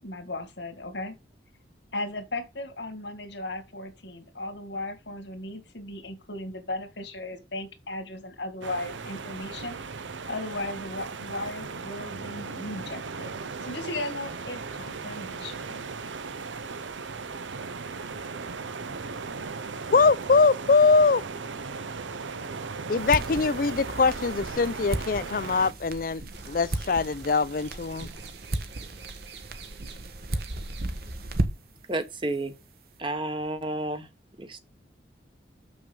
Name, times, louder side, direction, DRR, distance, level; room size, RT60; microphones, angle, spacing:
voice 1, 0.0-1.2 1.9-9.8 10.3-15.8, left 2 dB, 70° left, 2.1 m, -36 dB
sound 1, 8.6-25.7, right 4 dB, 90° right, 0.8 m, -37 dB
voice 2, 19.9-21.2 22.9-26.2 26.5-28.1, left 4 dB, 50° left, 0.4 m, -22 dB
sound 2, 23.0-31.8, right 2 dB, 50° right, 1.1 m, -35 dB
sound 3, 26.3-31.4, right 6 dB, 70° right, 1.7 m, -48 dB
voice 3, 31.9-32.5 33.0-34.1 34.4-34.6, right 1 dB, 25° right, 1.1 m, -31 dB
7.0 x 6.4 x 5.3 m
head